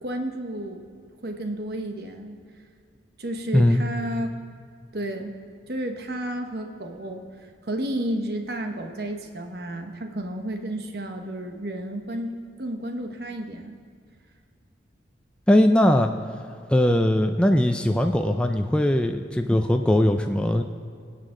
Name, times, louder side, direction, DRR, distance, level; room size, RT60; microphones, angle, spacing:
voice 1, 0.0-0.9 1.2-2.4 3.2-4.3 4.9-5.3 5.7-7.2 7.7-12.3 12.6-13.8, right 1 dB, 55° right, 4 dB, 1.1 m, -31 dB
voice 2, 15.5-16.1 16.7-20.6, left 1 dB, 5° left, 4 dB, 0.4 m, -20 dB
23.5 x 8.5 x 3.8 m, 2.2 s
head